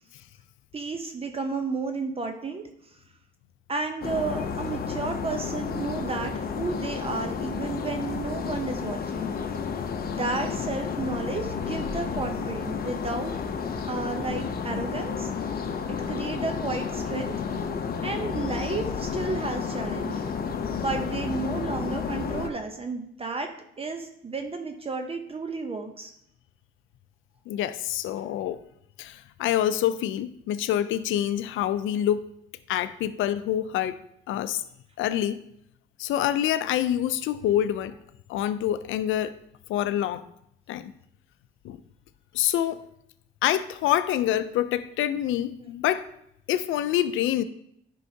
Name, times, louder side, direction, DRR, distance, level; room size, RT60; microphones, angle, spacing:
voice 1, 0.7-3.0 3.7-9.3 10.1-13.3 13.9-15.3 15.9-17.3 18.0-20.2 20.7-26.1, right 3 dB, 30° right, 5 dB, 0.7 m, -32 dB
sound 1, 4.0-22.5, left 6 dB, 50° left, 0.7 m, -31 dB
voice 2, 27.5-28.6 29.0-32.3 32.7-34.0 34.3-34.6 35.0-35.4 36.0-37.9 38.3-39.3 39.7-40.2 40.7-40.9 41.6-41.8 42.3-42.8 43.4-46.1 46.5-47.4, left 11 dB, 85° left, 14 dB, 0.5 m, -26 dB
9.7 x 5.5 x 2.8 m, 0.75 s
cardioid pair, 90°, 20 cm